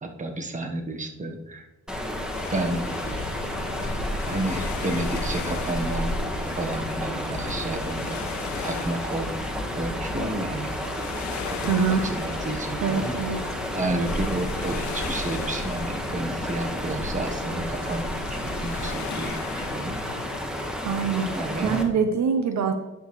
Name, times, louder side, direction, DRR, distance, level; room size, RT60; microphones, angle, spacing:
voice 1, 0.0-1.7 2.5-2.9 4.2-8.2 8.6-9.3 9.8-10.7 11.4-13.1 13.8-20.3 21.3-21.8, right 2 dB, 25° right, 4 dB, 1.3 m, -31 dB
sound 1, 1.9-21.8, equal, ahead, 1.5 m, -31 dB
sound 2, 2.3-20.5, left 11 dB, 70° left, 0.5 m, -39 dB
voice 2, 11.7-12.0 12.8-13.4 20.8-21.3 21.6-22.7, right 6 dB, 65° right, 6 dB, 1.0 m, -24 dB
sound 3, 12.9-21.8, left 1 dB, 15° left, 1.9 m, -44 dB
10.0 x 7.1 x 3.2 m, 1.0 s
cardioid pair, 90°, 30 cm